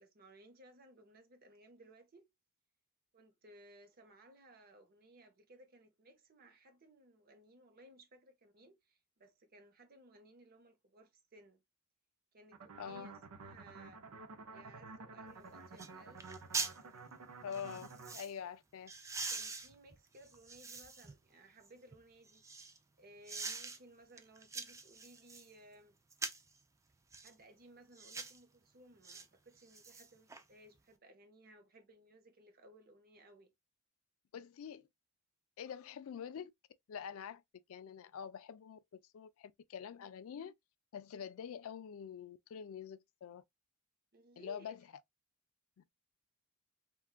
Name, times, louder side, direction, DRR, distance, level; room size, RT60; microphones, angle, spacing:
voice 1, 0.0-2.3 3.1-11.6 12.3-13.1 13.4-14.0 14.5-16.3 19.3-26.0 27.2-33.5 44.1-44.8, right 1 dB, 45° right, 0.7 m, -60 dB
sound 1, 12.5-18.2, right 4 dB, 85° right, 0.6 m, -51 dB
voice 2, 12.8-13.1 17.4-18.9 34.3-34.9 35.6-36.5 36.9-37.4 37.7-40.6 40.9-43.4 44.4-44.8 45.8-45.9, left 7 dB, 70° left, 0.3 m, -46 dB
sound 2, 15.3-15.4 15.8-15.9 16.2-16.8 17.5-18.3 18.9-21.1 21.6-22.8 23.3-23.8 24.2-25.5 26.1-26.5 27.1-27.3 27.9-28.4 29.0-29.2 29.6-30.4 30.8-30.9, right 4 dB, 15° right, 0.3 m, -43 dB
3.4 x 2.3 x 2.3 m
head